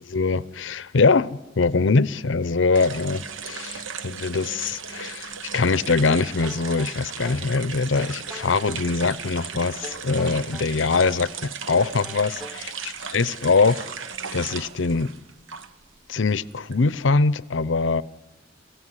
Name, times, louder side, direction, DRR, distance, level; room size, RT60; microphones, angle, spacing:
voice 1, 0.1-13.9 14.3-15.1 16.1-18.0, left 4 dB, 70° left, 0.7 m, -23 dB
sound 1, 2.7-15.9 16.2-17.4, right 6 dB, 85° right, 1.1 m, -36 dB
sound 2, 6.1-7.5 7.9-8.9 9.8-11.3 11.7-12.7, equal, ahead, 0.9 m, -43 dB
22.0 x 15.5 x 9.8 m
head